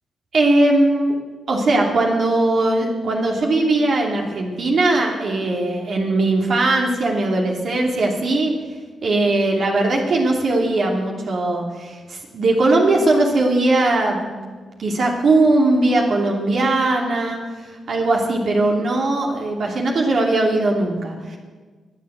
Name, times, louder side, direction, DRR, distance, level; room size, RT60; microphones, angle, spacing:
voice 1, 0.3-1.1 1.5-8.5 9.0-14.3 14.8-17.4 17.9-21.4, right 2 dB, 65° right, 0 dB, 2.7 m, -19 dB
21.5 x 7.7 x 8.1 m, 1.4 s
cardioid pair, 65°, 0 cm